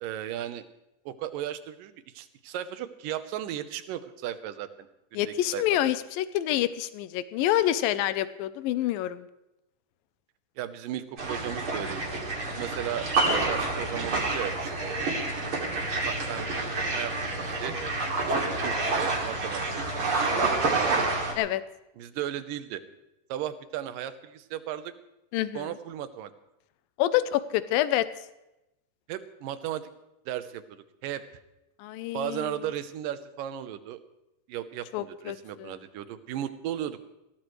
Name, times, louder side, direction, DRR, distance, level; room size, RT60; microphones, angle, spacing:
voice 1, 0.0-0.6 1.1-4.7 5.1-5.6 10.6-12.2 12.4-15.0 15.8-16.5 16.9-17.7 18.4-19.6 20.2-21.0 22.0-22.8 23.3-24.9 25.5-26.3 29.1-29.9 30.3-31.2 32.1-34.0 34.5-37.1, right 11 dB, 75° right, 11 dB, 2.5 m, -36 dB
voice 2, 5.1-9.3 21.4-21.6 25.3-25.7 27.0-28.1 31.8-32.5 34.9-35.8, left 13 dB, 85° left, 13 dB, 2.5 m, -27 dB
sound 1, 11.2-21.3, right 3 dB, 40° right, 3.2 m, -28 dB
21.0 x 17.5 x 3.2 m, 0.91 s
omnidirectional pair, 4.1 m